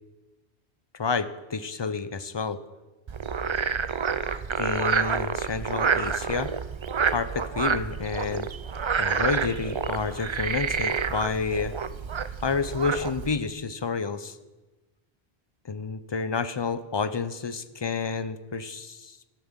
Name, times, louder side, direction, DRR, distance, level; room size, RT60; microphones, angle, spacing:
voice 1, 0.9-2.6 4.6-6.5 7.1-8.5 9.0-11.7 12.4-14.4 15.6-19.3, left 5 dB, 35° left, 12 dB, 0.5 m, -29 dB
Frog, 3.1-13.4, right 6 dB, 45° right, 0.3 m, -28 dB
12.5 x 7.4 x 7.4 m, 1.1 s
omnidirectional pair, 1.1 m